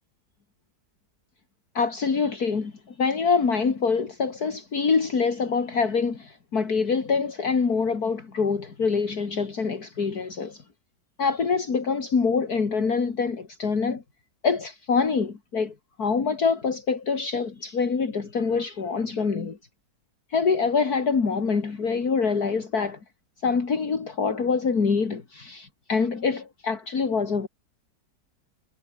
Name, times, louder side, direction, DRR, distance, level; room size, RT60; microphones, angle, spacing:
voice 1, 1.7-10.6 11.2-14.0 14.4-19.6 20.3-23.0 23.4-27.5, left 5 dB, 60° left, 3.0 m, -25 dB
omnidirectional pair, 1.8 m